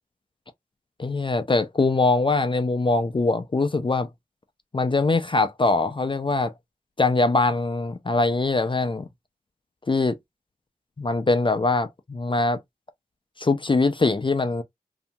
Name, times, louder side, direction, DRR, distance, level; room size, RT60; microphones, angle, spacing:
voice 1, 1.0-4.1 4.7-6.5 7.0-9.1 9.9-10.2 11.0-12.6 13.4-14.6, left 3 dB, 30° left, 0.4 m, -22 dB
2.7 x 2.7 x 2.2 m
cardioid pair, 50°, 16 cm